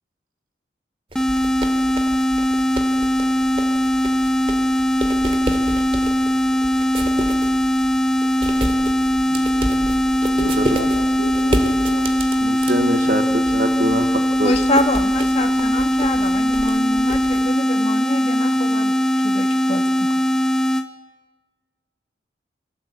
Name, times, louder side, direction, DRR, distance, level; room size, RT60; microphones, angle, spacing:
sound 1, 1.1-20.9, equal, 5° left, 1.2 m, -20 dB
sound 2, 1.1-17.4, right 1 dB, 30° right, 2.4 m, -31 dB
voice 1, 9.2-12.2, left 1 dB, 90° left, 0 dB, 3.0 m, -33 dB
voice 2, 12.4-14.5, right 1 dB, 50° right, 7 dB, 1.9 m, -24 dB
voice 3, 14.4-18.9 19.2-20.1, left 1 dB, 35° left, 5 dB, 2.1 m, -26 dB
29.0 x 23.0 x 8.5 m, 1.4 s
head